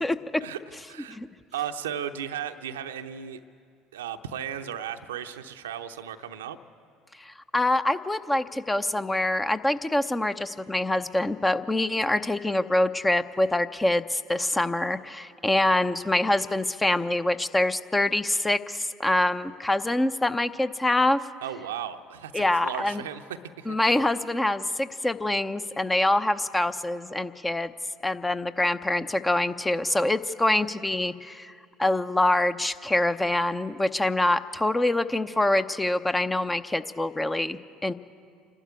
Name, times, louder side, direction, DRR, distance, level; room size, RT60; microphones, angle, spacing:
voice 1, 0.0-0.4 1.1-1.3 7.2-21.2 22.3-23.0 23.7-27.7 28.0-31.5 31.8-37.9, left 1 dB, 15° left, 11 dB, 0.7 m, -25 dB
voice 2, 1.5-3.4 3.9-6.6 21.4-23.8, right 9 dB, 80° right, 8 dB, 0.7 m, -35 dB
27.5 x 12.0 x 8.4 m, 2.3 s
hypercardioid pair, 65°, 0 cm